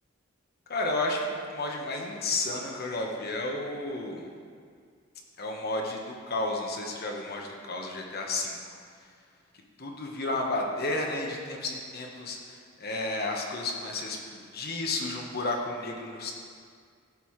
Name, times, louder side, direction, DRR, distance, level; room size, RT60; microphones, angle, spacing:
voice 1, 0.7-4.3 5.4-8.6 9.8-16.3, left 2 dB, 55° left, 1 dB, 1.1 m, -32 dB
14.0 x 5.5 x 3.2 m, 2.1 s
head